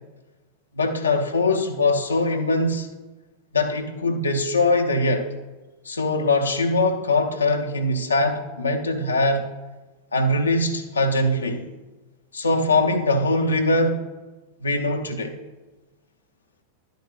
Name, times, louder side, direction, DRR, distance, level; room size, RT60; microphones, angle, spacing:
voice 1, 0.7-2.9 3.5-5.3 5.8-9.4 10.1-11.7 12.3-14.0 14.6-15.4, left 2 dB, 75° left, 4 dB, 0.8 m, -22 dB
11.0 x 9.1 x 2.4 m, 1.2 s
figure-of-eight pair, 90°, 0 cm